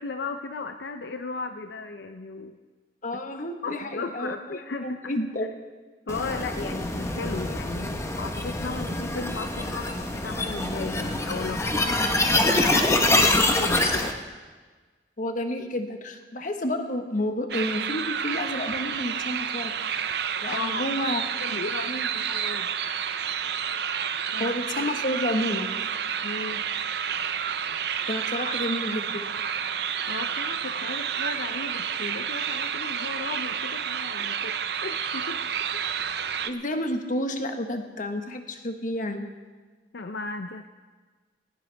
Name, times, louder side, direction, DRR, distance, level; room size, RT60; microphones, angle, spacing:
voice 1, 0.0-2.6 3.3-5.1 6.1-14.6 20.5-20.9 21.4-22.8 24.3-24.5 26.2-26.6 30.1-35.4 35.7-35.8 39.9-40.7, left 3 dB, 70° left, 7 dB, 0.6 m, -36 dB
voice 2, 3.0-5.5 15.2-19.7 20.4-21.2 21.9-22.1 24.4-25.7 28.1-29.2 36.4-39.3, left 1 dB, 50° left, 6 dB, 1.4 m, -30 dB
sound 1, 6.1-14.1, left 2 dB, 15° left, 1.1 m, -25 dB
sound 2, 17.5-36.5, right 8 dB, 65° right, 0.7 m, -30 dB
18.5 x 17.5 x 3.5 m, 1.4 s
head